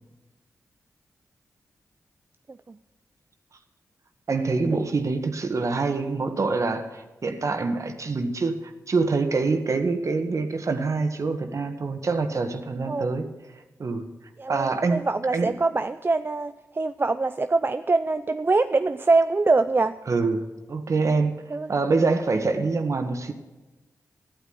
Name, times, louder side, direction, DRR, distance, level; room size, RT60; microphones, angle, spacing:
voice 1, 4.3-13.3 13.8-14.1 14.5-15.0 15.3-15.5 20.1-21.3 21.7-23.3, right 3 dB, 55° right, 7 dB, 1.7 m, -25 dB
voice 2, 14.4-20.0 21.5-21.7, right 3 dB, 35° right, 10 dB, 0.6 m, -24 dB
13.5 x 8.7 x 9.6 m, 1.1 s
supercardioid pair, 45°, 6 cm